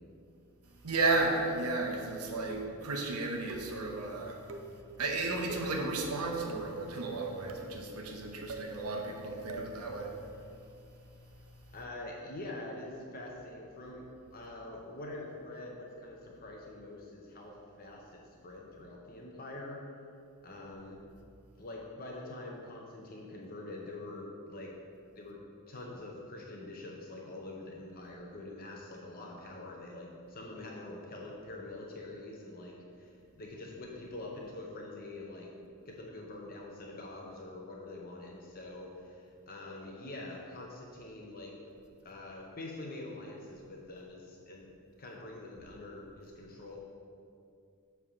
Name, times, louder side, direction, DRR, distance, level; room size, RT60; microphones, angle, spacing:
voice 1, 0.8-4.4 5.0-10.1, right 3 dB, 80° right, 1 dB, 0.9 m, -33 dB
sound 1, 2.5-2.9 3.5-3.9 4.5-4.8 5.5-5.8 6.5-6.8 7.5-7.8 8.5-8.7 9.5-9.8, right 3 dB, 65° right, 0.6 m, -44 dB
voice 2, 11.7-19.8 20.4-21.0 21.6-24.7 25.1-25.4 25.7-35.5 35.9-41.5 42.0-44.7 45.0-46.8, left 2 dB, 40° left, -1 dB, 0.7 m, -45 dB
7.3 x 3.4 x 5.9 m, 2.5 s
head